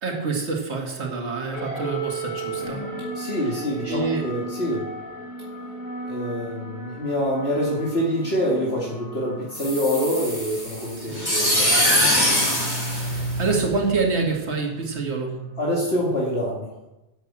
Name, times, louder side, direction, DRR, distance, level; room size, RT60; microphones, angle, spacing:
voice 1, 0.0-2.9 3.8-4.2 11.0-11.3 13.0-15.5, right 4 dB, 75° right, 0 dB, 2.4 m, -27 dB
Slow Abstract Guitar, 1.5-16.3, right 2 dB, 45° left, 4.6 m, -35 dB
voice 2, 3.1-5.0 6.0-12.3 15.6-16.7, equal, 65° left, -4 dB, 2.6 m, -26 dB
sound 1, 9.5-13.9, equal, 20° left, 3.4 m, -23 dB
12.0 x 8.3 x 7.5 m, 0.98 s
omnidirectional pair, 1.2 m